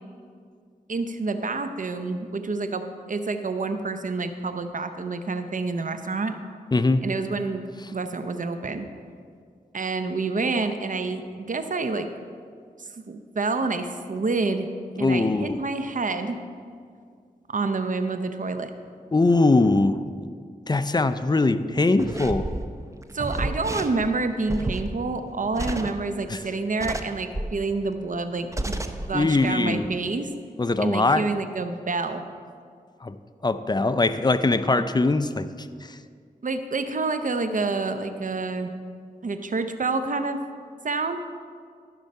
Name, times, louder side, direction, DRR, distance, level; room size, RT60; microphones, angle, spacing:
voice 1, 0.9-2.8 3.1-6.4 7.0-7.6 7.9-8.9 9.7-12.1 12.8-14.7 15.0-16.4 17.5-18.7 23.1-30.3 30.8-32.2 36.4-38.7 39.2-40.4 40.8-41.2, right 3 dB, 55° right, 8 dB, 0.7 m, -28 dB
voice 2, 6.7-7.1 15.0-15.6 19.1-20.0 20.7-22.5 26.3-26.4 29.1-29.8 30.6-31.3 33.0-33.2 33.4-35.5 35.8-36.0, left 3 dB, 25° left, 11 dB, 0.5 m, -21 dB
sound 1, 22.0-26.4 26.8-27.6 28.0-28.1 28.5-29.1 29.4-29.6, right 1 dB, 20° right, 0.6 m, -31 dB
12.5 x 5.5 x 5.4 m, 2.1 s
cardioid pair, 45°, 16 cm